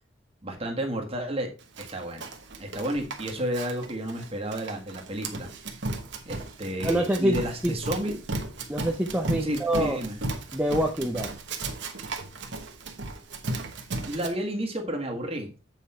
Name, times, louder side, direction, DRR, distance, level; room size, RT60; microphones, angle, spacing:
voice 1, 0.4-1.5 1.8-2.3 2.6-5.5 6.2-8.1 9.4-10.2 14.0-15.6, right 1 dB, 30° right, 1 dB, 1.7 m, -31 dB
Run, 1.8-14.3, right 2 dB, 60° right, 1.2 m, -35 dB
voice 2, 6.8-7.4 7.6-7.7 8.7-10.0 10.5-11.3, right 1 dB, 5° right, 1 dB, 0.6 m, -25 dB
7.8 x 5.3 x 4.3 m, 0.33 s
head